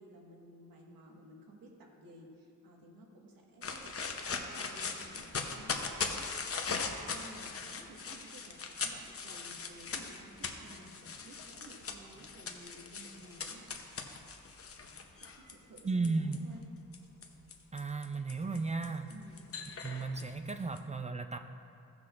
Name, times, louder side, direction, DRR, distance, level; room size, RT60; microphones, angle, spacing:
voice 1, 0.0-3.9 4.3-6.3 6.7-13.7 15.2-16.6 19.1-19.4, right 1 dB, 80° right, -1 dB, 1.6 m, -54 dB
sound 1, 3.6-16.4 16.9-20.8, left 5 dB, 40° left, 0.8 m, -40 dB
voice 2, 15.8-16.4 17.7-19.1 19.8-21.4, right 3 dB, 20° right, 7 dB, 0.4 m, -34 dB
17.0 x 6.0 x 2.5 m, 2.4 s
cardioid pair, 85°, 34 cm